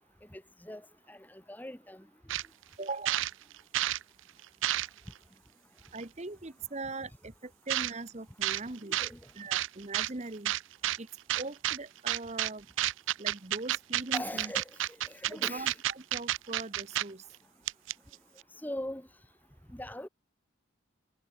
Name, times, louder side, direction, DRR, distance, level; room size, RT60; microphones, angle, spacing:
voice 1, 0.3-2.1 9.0-9.2 14.1-14.7 15.0-15.8 18.6-19.1 19.7-20.1, left 1 dB, 10° left, 1.1 m, -41 dB
sound 1, 2.3-2.5 2.8-4.0 4.4-5.1 6.0-6.1 7.7-7.9 8.4-8.6 8.9-9.1 9.5-10.1 10.5-11.0 11.3-11.8 12.1-12.5 12.8-17.0 17.3-17.4 17.7-18.1, right 14 dB, 65° right, 0.4 m, -30 dB
voice 2, 2.8-3.2 5.9-9.0 9.4-10.5 11.0-11.1 11.3-12.7 13.2-14.5 15.3-17.2, right 3 dB, 35° right, 1.0 m, -41 dB
head